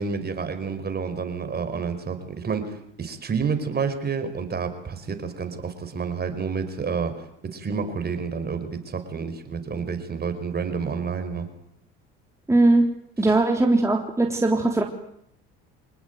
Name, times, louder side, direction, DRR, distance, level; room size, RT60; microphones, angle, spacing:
voice 1, 0.0-11.5 13.2-13.4, right 5 dB, 30° right, 8 dB, 5.2 m, -29 dB
voice 2, 12.5-12.9 13.2-14.8, right 2 dB, 10° right, 1 dB, 3.5 m, -19 dB
25.5 x 19.5 x 9.4 m, 0.74 s
supercardioid pair, 85°, 30 cm